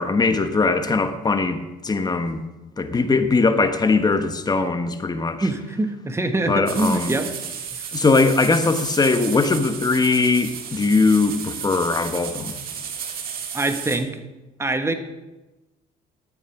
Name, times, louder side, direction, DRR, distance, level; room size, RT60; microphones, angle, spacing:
voice 1, 0.0-2.4 2.8-5.5 6.5-7.1 7.9-12.6, left 3 dB, 25° left, 8 dB, 1.2 m, -20 dB
voice 2, 5.4-7.3 7.7-7.9 13.5-14.2 14.6-14.9, right 2 dB, 15° right, 7 dB, 1.4 m, -24 dB
sound 1, 6.7-14.0, right 7 dB, 60° right, 2.0 m, -33 dB
12.0 x 9.0 x 5.9 m, 1.1 s
cardioid pair, 110°, 17 cm